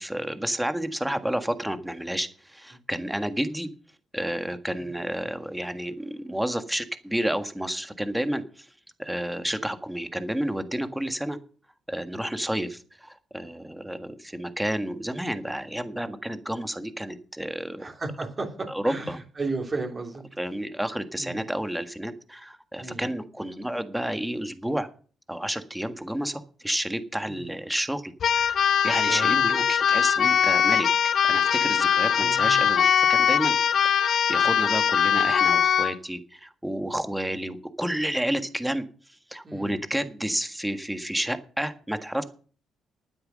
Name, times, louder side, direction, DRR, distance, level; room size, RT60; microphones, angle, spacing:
voice 1, 0.0-3.7 4.1-8.7 9.0-11.4 11.9-17.8 18.7-19.2 20.4-24.9 25.3-33.6 33.8-38.9 39.3-42.2, right 1 dB, 5° right, 9 dB, 1.6 m, -30 dB
voice 2, 17.8-18.5 18.8-20.2 21.2-21.4 22.8-23.0 27.3-27.4 29.1-29.3 32.2-32.6 39.4-39.7, right 3 dB, 30° right, 0 dB, 3.8 m, -34 dB
Keyboard (musical), 28.2-36.0, left 8 dB, 60° left, 0.9 m, -21 dB
12.5 x 9.5 x 6.4 m, 0.41 s
cardioid pair, 90°, 0 cm